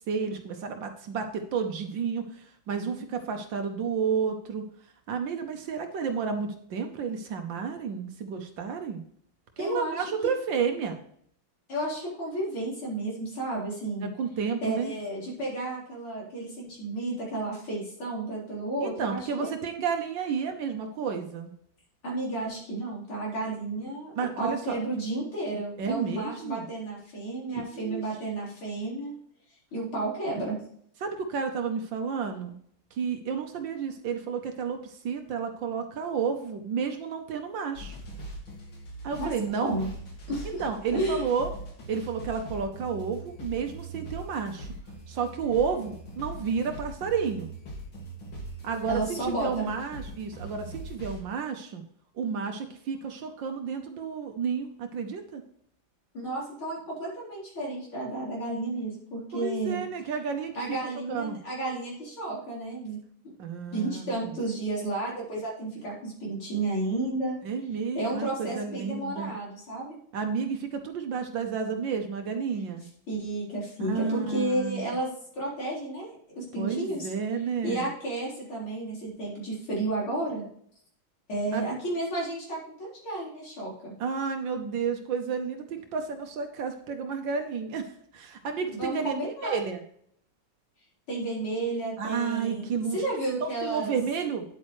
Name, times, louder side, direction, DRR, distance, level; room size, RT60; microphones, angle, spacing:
voice 1, 0.1-4.6 5.1-9.0 9.6-11.0 14.0-14.9 18.8-21.5 24.1-24.8 25.8-26.7 27.5-28.0 31.0-32.5 32.9-38.0 39.0-39.8 40.4-41.5 41.9-44.7 45.1-47.5 48.6-51.8 52.1-55.4 59.3-60.8 61.1-61.4 63.4-64.4 67.4-69.3 70.1-72.8 73.8-74.9 76.6-77.9 81.5-81.6 84.0-89.1 89.4-89.8 92.0-93.1 93.4-94.4, right 6 dB, 70° right, 5 dB, 1.5 m, -31 dB
voice 2, 9.6-10.0 11.7-14.1 14.6-19.5 22.0-24.1 24.4-29.1 29.7-30.6 39.2-39.3 39.6-39.9 40.3-40.6 40.9-41.2 48.9-49.7 56.1-59.8 60.6-63.0 63.7-67.4 67.9-70.0 73.1-76.1 76.4-77.1 77.6-80.4 81.3-83.9 88.7-89.6 91.1-93.9, right 2 dB, 85° left, -5 dB, 5.0 m, -32 dB
sound 1, 37.7-51.2, right 1 dB, 70° left, 3.0 m, -41 dB
9.8 x 8.5 x 3.2 m, 0.65 s
omnidirectional pair, 2.2 m